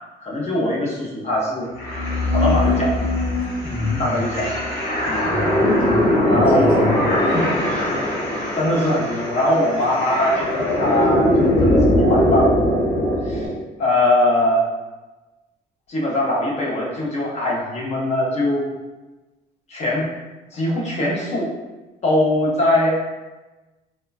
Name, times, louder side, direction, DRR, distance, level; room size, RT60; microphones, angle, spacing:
voice 1, 0.2-1.7 2.3-3.1 3.8-4.5 5.0-5.2 6.3-6.7 8.5-12.8 13.2-13.5 13.8-14.6 15.9-18.7 19.7-20.1 20.5-21.5 22.0-23.0, left 1 dB, 40° left, -3 dB, 0.6 m, -21 dB
ab lost atmos, 1.8-13.5, left 1 dB, 80° left, 1.4 m, -20 dB
voice 2, 3.6-4.2 5.2-7.0 7.2-7.5, left 2 dB, 5° right, -7 dB, 0.5 m, -27 dB
3.1 x 2.2 x 2.3 m, 1.2 s
cardioid pair, 110°, 17 cm